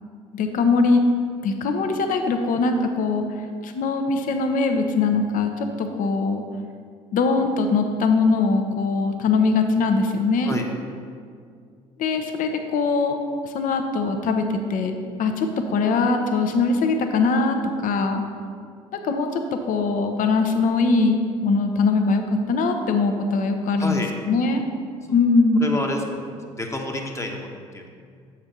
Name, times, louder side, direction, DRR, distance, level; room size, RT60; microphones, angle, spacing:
voice 1, 0.3-1.0 1.4-3.2 3.6-5.5 5.8-6.4 7.1-10.5 12.0-13.2 13.5-17.6 17.8-18.2 19.0-19.4 19.7-22.2 22.5-24.6 25.1-25.6, left 4 dB, 55° left, 5 dB, 0.8 m, -21 dB
voice 2, 23.8-24.1 25.0-25.1 25.6-27.9, left 1 dB, 15° left, 1 dB, 1.0 m, -29 dB
7.0 x 4.3 x 5.2 m, 2.2 s
hypercardioid pair, 55°, 17 cm